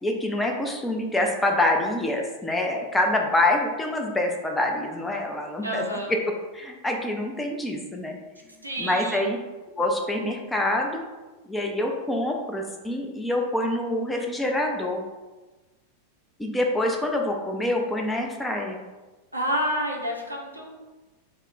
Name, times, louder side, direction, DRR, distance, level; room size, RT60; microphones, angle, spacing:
voice 1, 0.0-6.2 6.5-8.1 8.8-9.4 9.8-11.0 11.4-15.0 16.4-18.8, left 1 dB, 10° left, 1 dB, 0.3 m, -26 dB
voice 2, 5.6-6.1 8.6-9.3 19.3-20.7, equal, 85° right, 0 dB, 0.4 m, -29 dB
2.2 x 2.0 x 3.5 m, 1.2 s
figure-of-eight pair, 90°, 0 cm